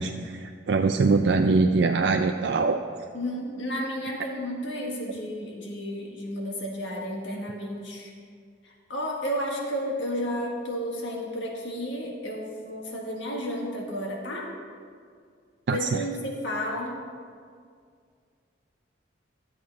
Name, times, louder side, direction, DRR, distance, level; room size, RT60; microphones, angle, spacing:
voice 1, 0.0-2.8 15.7-16.0, right 3 dB, 65° right, 5 dB, 0.4 m, -23 dB
voice 2, 3.1-8.1 8.9-14.5 15.7-17.0, equal, 80° left, -1 dB, 1.7 m, -32 dB
12.5 x 7.7 x 4.7 m, 2.1 s
head